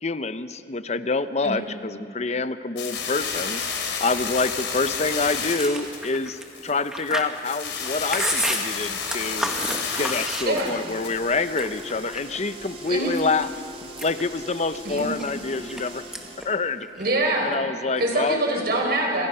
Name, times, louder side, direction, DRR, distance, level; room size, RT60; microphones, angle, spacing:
voice 1, 0.0-9.5 10.0-13.5 14.0-16.0 16.4-16.9 17.4-18.7, left 3 dB, 40° left, 12 dB, 0.8 m, -27 dB
sound 1, 2.8-12.2, left 5 dB, 80° left, 3.6 m, -31 dB
Chewing mastication, 5.5-11.0 11.3-12.4 12.9-13.5 13.8-15.8 16.1-16.5 16.7-17.6, right 1 dB, 5° right, 1.6 m, -31 dB
sound 2, 10.4-16.6, right 1 dB, 30° right, 2.5 m, -41 dB
voice 2, 17.0-17.5 18.0-19.3, right 1 dB, 60° right, 1 dB, 4.9 m, -24 dB
28.0 x 27.0 x 5.6 m, 2.6 s
head